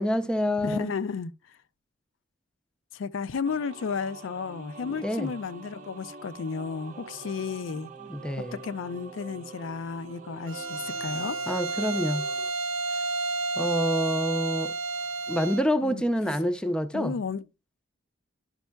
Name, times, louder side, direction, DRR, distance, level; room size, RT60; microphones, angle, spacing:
voice 1, 0.0-0.9 4.8-5.3 8.1-8.6 11.5-12.3 13.6-14.7 15.3-17.2, equal, 5° left, 0.4 m, -27 dB
voice 2, 0.6-1.6 2.9-7.9 8.5-11.4 15.8-16.0 16.9-17.4, left 5 dB, 75° left, 0.4 m, -33 dB
sound 1, 3.4-12.5, right 4 dB, 40° right, 0.6 m, -45 dB
Bowed string instrument, 10.5-15.7, right 3 dB, 90° right, 0.6 m, -31 dB
11.5 x 5.3 x 2.3 m
head